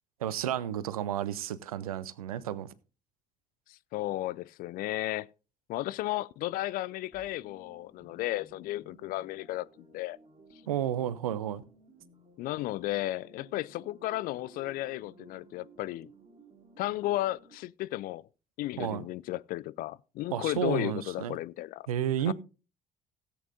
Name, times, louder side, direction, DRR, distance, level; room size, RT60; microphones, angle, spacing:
voice 1, 0.2-2.7 10.7-11.6 18.8-19.0 20.3-21.4 21.9-22.3, right 10 dB, 80° right, 0.6 m, -32 dB
voice 2, 3.7-5.3 5.7-10.2 12.4-16.1 16.8-18.3 18.6-21.9 22.3-22.4, left 16 dB, 50° left, 0.4 m, -34 dB
sound 1, 7.1-17.6, right 2 dB, 30° right, 3.1 m, -57 dB
17.0 x 8.4 x 2.6 m
figure-of-eight pair, 50°, 18 cm